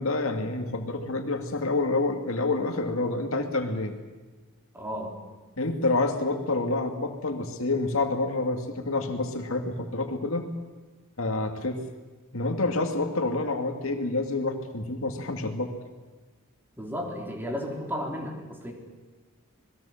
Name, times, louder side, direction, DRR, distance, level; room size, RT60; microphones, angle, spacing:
voice 1, 0.0-3.9 5.6-10.5 11.2-11.8 12.3-15.7, left 2 dB, 70° left, 5 dB, 2.4 m, -28 dB
voice 2, 4.7-5.1 16.8-18.7, equal, 10° right, 1 dB, 3.7 m, -33 dB
27.0 x 20.5 x 7.4 m, 1.3 s
head